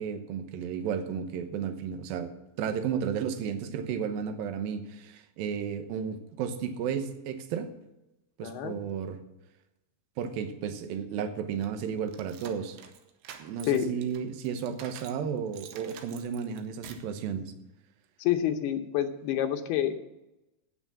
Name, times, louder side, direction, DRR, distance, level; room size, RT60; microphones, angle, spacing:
voice 1, 0.0-2.3 2.6-7.7 8.4-9.2 10.2-12.8 13.4-17.5, right 7 dB, 70° right, 9 dB, 2.6 m, -33 dB
voice 2, 8.4-8.8 13.7-13.9 18.2-20.0, left 10 dB, 80° left, 5 dB, 2.8 m, -28 dB
sound 1, 11.6-15.2 15.5-17.1, right 9 dB, 90° right, 3.1 m, -48 dB
9.2 x 8.8 x 7.4 m, 0.95 s
omnidirectional pair, 4.7 m